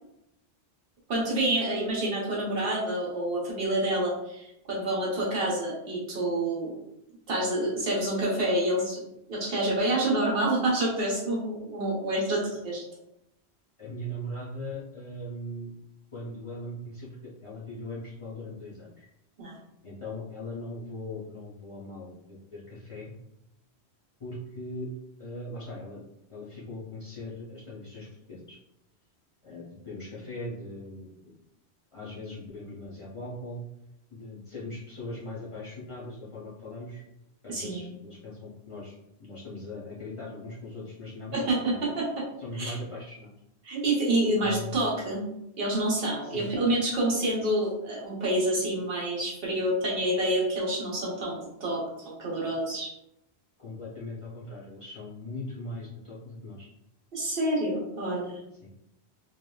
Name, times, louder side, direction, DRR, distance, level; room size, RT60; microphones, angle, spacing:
voice 1, 1.1-6.7 7.3-9.0 9.3-12.8 19.4-19.6 37.5-37.9 41.3-42.2 42.6-42.8 43.6-45.2 45.6-52.9 57.1-58.4, right 1 dB, 65° right, -3 dB, 1.0 m, -28 dB
voice 2, 13.8-15.7 16.1-19.1 19.8-23.1 24.2-24.9 25.2-26.0 26.3-28.6 29.4-31.4 31.9-33.6 34.1-37.0 37.4-41.3 41.7-41.8 42.4-43.3 44.4-44.8 46.2-46.7 53.6-56.7 58.6-58.7, left 1 dB, 35° left, -7 dB, 0.6 m, -40 dB
3.2 x 2.2 x 2.2 m, 0.82 s
omnidirectional pair, 1.1 m